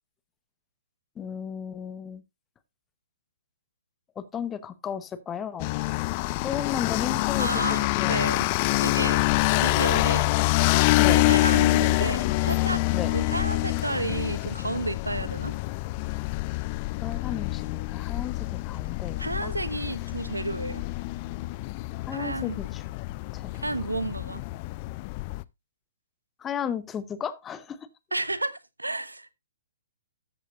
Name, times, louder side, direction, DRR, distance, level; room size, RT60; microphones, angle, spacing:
voice 1, 1.2-2.2 4.2-5.7 6.4-7.7 7.9-8.2 11.0-11.2 12.9-13.1 17.0-19.5 22.0-22.8 23.3-23.5 26.4-27.8, left 8 dB, 15° left, 1.0 m, -34 dB
sound 1, 5.6-25.4, left 21 dB, 35° left, 0.5 m, -26 dB
voice 2, 7.4-8.5 8.8-9.2 9.6-10.3 11.1-12.8 13.1-15.6 19.2-20.9 22.1-22.6 23.6-24.4 28.1-29.3, right 2 dB, 80° right, 1.1 m, -31 dB
13.5 x 8.2 x 2.4 m
figure-of-eight pair, 125°, 0 cm